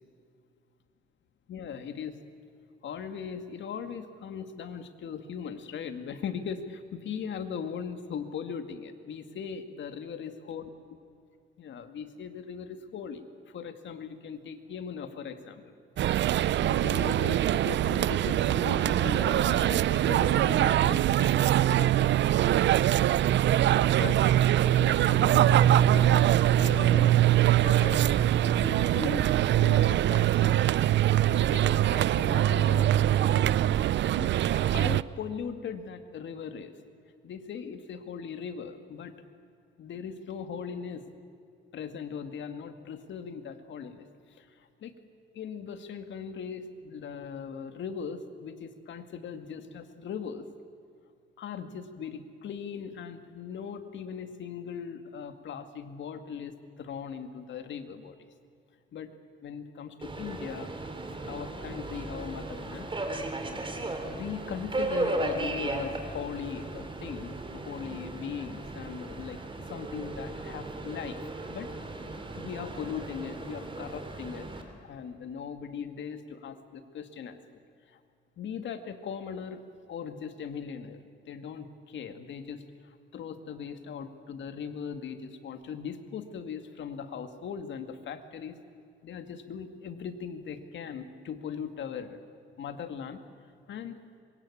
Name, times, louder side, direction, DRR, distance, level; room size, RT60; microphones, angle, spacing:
voice 1, 1.5-2.2 2.8-10.7 11.6-15.7 16.1-16.2 16.5-22.1 24.0-24.3 24.6-27.2 27.5-30.6 31.3-33.6 34.1-36.7 37.2-39.1 39.8-41.1 41.7-44.9 45.3-50.5 51.4-58.2 58.9-60.7 61.2-63.3 64.1-69.4 69.7-71.8 72.3-77.4 77.9-78.0 78.4-88.6 89.0-92.2 92.6-93.2 93.7-94.0, left 7 dB, 70° left, 8 dB, 2.2 m, -39 dB
sound 1, 16.0-35.0, right 12 dB, 65° right, 0.6 m, -23 dB
Subway metro underground, 60.0-74.6, right 2 dB, 25° right, 3.8 m, -36 dB
26.0 x 23.0 x 8.7 m, 2.3 s
cardioid pair, 90°, 20 cm